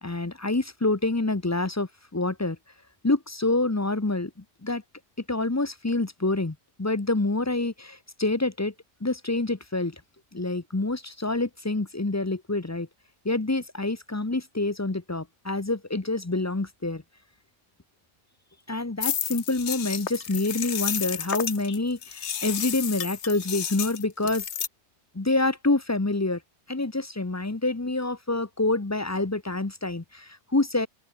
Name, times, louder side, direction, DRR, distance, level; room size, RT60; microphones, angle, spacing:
voice 1, 0.0-2.6 3.0-4.3 4.6-4.8 5.3-8.7 9.0-9.9 10.3-12.9 13.2-17.0 18.7-24.4 25.1-26.4 26.7-30.9, left 2 dB, 20° left, 0.4 m, -27 dB
sound 1, 19.0-24.7, left 8 dB, 50° left, 1.1 m, -31 dB
open air
omnidirectional pair, 1.8 m